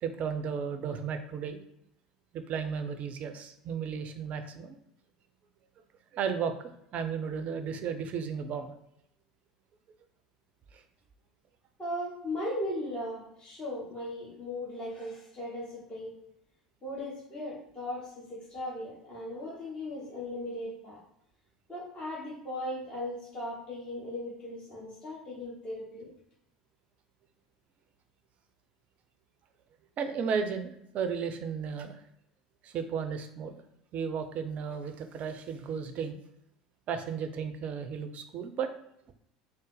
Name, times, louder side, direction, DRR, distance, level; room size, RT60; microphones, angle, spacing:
voice 1, 0.0-1.6 2.3-4.8 6.1-6.5 6.9-8.7 10.7-10.8 30.0-32.0 32.6-33.6 33.9-36.2 36.9-38.7, right 6 dB, 40° right, 8 dB, 0.5 m, -34 dB
voice 2, 11.8-16.2 16.8-21.0 21.7-26.1, left 1 dB, 25° left, -7 dB, 1.3 m, -38 dB
3.8 x 2.0 x 3.9 m, 0.77 s
figure-of-eight pair, 75°, 4 cm